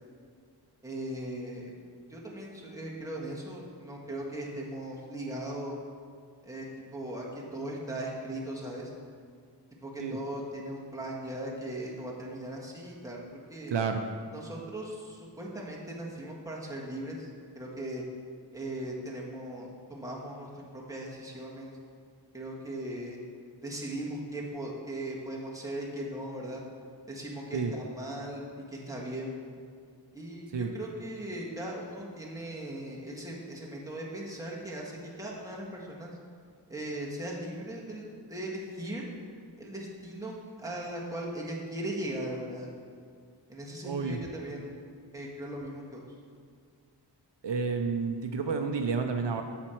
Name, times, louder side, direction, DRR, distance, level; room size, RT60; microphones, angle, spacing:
voice 1, 0.8-1.7 2.1-5.8 6.4-6.7 6.9-8.9 9.8-13.2 13.5-13.7 14.3-17.3 17.5-18.0 18.5-21.7 22.3-23.2 23.6-26.6 27.1-29.3 30.1-36.2 36.7-39.0 39.6-42.7 43.5-44.8 45.1-46.0, right 1 dB, 10° right, -4 dB, 1.6 m, -38 dB
voice 2, 13.7-14.0 27.5-27.7 30.5-30.7 43.8-44.2 47.4-49.4, right 5 dB, 75° right, 5 dB, 0.6 m, -30 dB
8.5 x 6.7 x 4.5 m, 2.1 s
wide cardioid pair, 70°, 43 cm